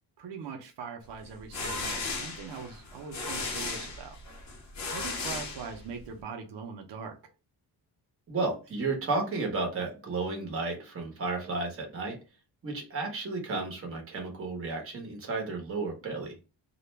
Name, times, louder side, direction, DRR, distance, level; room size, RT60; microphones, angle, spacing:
voice 1, 0.2-4.2 4.9-7.2, right 6 dB, 85° right, 0.7 m, -41 dB
sound 1, 1.2-6.1, left 3 dB, 45° left, 0.7 m, -36 dB
voice 2, 8.3-12.2 12.6-16.3, right 3 dB, 35° right, 0.9 m, -32 dB
2.4 x 2.1 x 3.1 m
cardioid pair, 140°, 41 cm